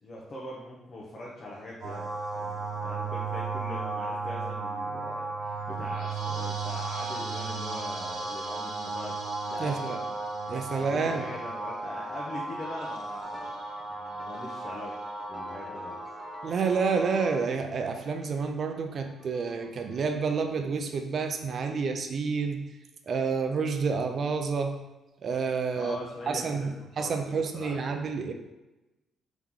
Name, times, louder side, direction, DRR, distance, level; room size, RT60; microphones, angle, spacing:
voice 1, 0.0-9.2 9.5-10.1 10.7-13.5 13.9-15.0 15.3-16.0 25.8-26.7 27.0-28.0, left 1 dB, 45° left, -4 dB, 0.8 m, -42 dB
sound 1, 1.8-17.4, right 3 dB, 75° right, 1.0 m, -35 dB
voice 2, 9.6-10.0 10.5-11.2 16.4-22.6 23.1-24.8 25.2-26.0 26.3-26.7 27.0-28.3, right 5 dB, 50° right, 5 dB, 0.5 m, -29 dB
sound 2, 13.2-20.5, equal, 10° right, 0.7 m, -49 dB
3.7 x 3.0 x 3.6 m, 1.0 s
cardioid pair, 90°, 0 cm